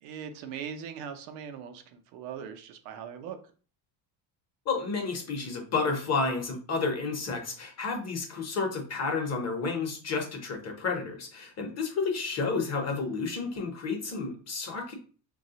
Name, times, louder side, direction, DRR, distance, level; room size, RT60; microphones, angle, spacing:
voice 1, 0.0-3.4, right 7 dB, 85° right, 7 dB, 0.7 m, -40 dB
voice 2, 4.7-14.9, left 4 dB, 35° left, 3 dB, 0.8 m, -31 dB
3.0 x 2.3 x 2.8 m, 0.40 s
cardioid pair, 120°, 47 cm